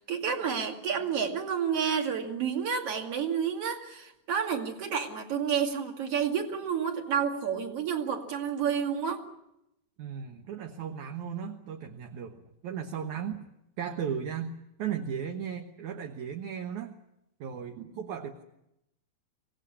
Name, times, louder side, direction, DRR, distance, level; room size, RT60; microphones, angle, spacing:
voice 1, 0.0-9.2, right 7 dB, 40° right, 4 dB, 2.9 m, -30 dB
voice 2, 10.0-13.4 13.8-17.0 17.4-18.4, right 8 dB, 65° right, 4 dB, 2.1 m, -36 dB
25.0 x 18.0 x 9.9 m, 0.84 s
omnidirectional pair, 4.7 m